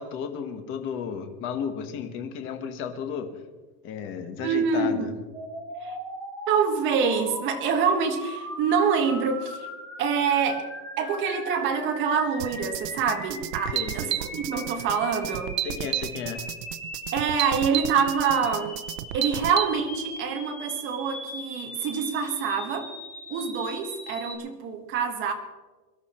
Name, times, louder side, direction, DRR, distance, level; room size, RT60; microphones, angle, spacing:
voice 1, 0.0-3.3 3.8-5.1 13.7-14.2 15.6-16.4, left 7 dB, 25° left, 7 dB, 1.3 m, -33 dB
voice 2, 4.4-5.1 5.8-6.0 6.5-9.7 10.0-10.7 11.0-15.6 17.1-18.8 19.1-22.9 23.3-25.3, right 6 dB, 25° right, 4 dB, 1.6 m, -26 dB
sound 1, 5.3-24.3, left 1 dB, 5° left, 4.2 m, -39 dB
sound 2, 12.4-19.7, right 13 dB, 75° right, 0.9 m, -31 dB
23.0 x 12.5 x 4.4 m, 1.3 s
supercardioid pair, 175°, 49 cm